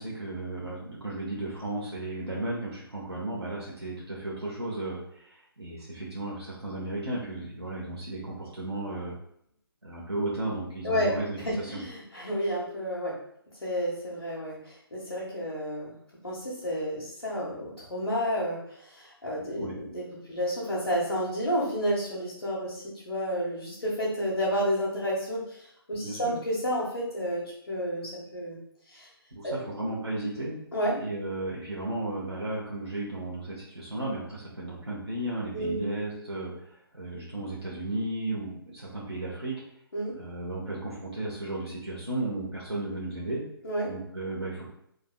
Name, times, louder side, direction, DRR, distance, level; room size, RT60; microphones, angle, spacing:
voice 1, 0.0-9.2 9.8-11.8 19.6-19.8 26.0-26.4 29.3-30.6 31.0-39.6 40.1-43.4 43.9-44.7, right 2 dB, 85° right, -5 dB, 1.3 m, -34 dB
voice 2, 11.4-13.2 13.6-15.9 16.2-28.6 28.9-29.1 29.4-29.5 30.7-31.0 35.5-35.8 39.9-40.2 43.6-43.9, equal, 80° left, -7 dB, 1.6 m, -31 dB
5.1 x 3.9 x 2.4 m, 0.72 s
figure-of-eight pair, 145°, 13 cm